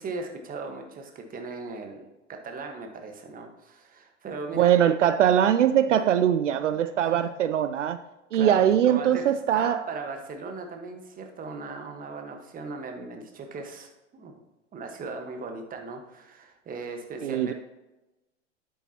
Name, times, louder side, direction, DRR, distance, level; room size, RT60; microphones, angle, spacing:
voice 1, 0.0-2.1 2.4-4.7 6.7-7.3 8.3-14.3 14.7-17.5, right 3 dB, 25° right, 1.4 m, -38 dB
voice 2, 4.5-8.0 8.3-9.8 17.2-17.5, right 10 dB, 80° right, 0.5 m, -22 dB
9.7 x 8.6 x 2.9 m
hypercardioid pair, 95°, 36 cm